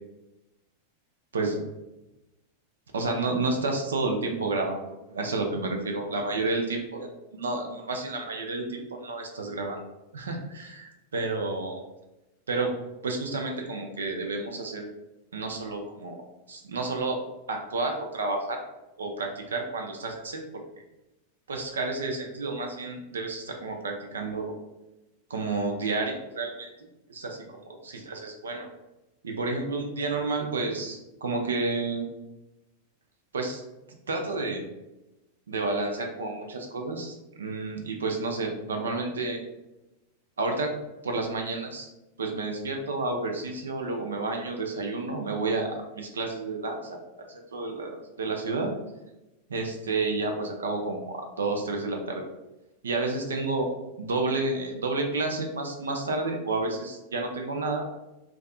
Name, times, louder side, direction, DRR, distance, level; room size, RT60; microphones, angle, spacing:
voice 1, 2.9-6.8 7.3-9.8 10.1-11.8 12.5-12.7 13.0-14.8 15.3-16.2 16.5-17.2 17.5-18.6 19.0-20.4 21.5-24.5 25.3-26.7 27.1-27.8 28.1-28.7 29.2-32.1 33.3-33.6 34.1-34.6 35.5-39.4 40.4-40.7 41.0-41.9 42.2-47.0 47.3-48.7 49.5-52.3 52.8-53.7 54.0-57.9, right 3 dB, 70° right, 2 dB, 0.3 m, -30 dB
2.5 x 2.3 x 2.3 m, 0.97 s
figure-of-eight pair, 90°, 0 cm